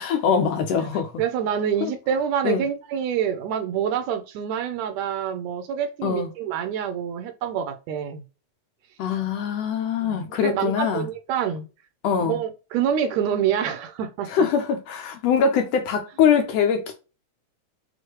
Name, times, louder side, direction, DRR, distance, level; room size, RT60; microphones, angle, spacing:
voice 1, 0.0-1.1 1.8-1.9 2.4-2.6 6.0-6.3 9.0-11.1 12.0-12.4 14.3-16.9, left 7 dB, 75° left, 1.6 m, -23 dB
voice 2, 1.2-8.2 10.0-11.7 12.2-14.5, right 8 dB, 75° right, 1.8 m, -26 dB
6.3 x 2.2 x 3.0 m
omnidirectional pair, 3.3 m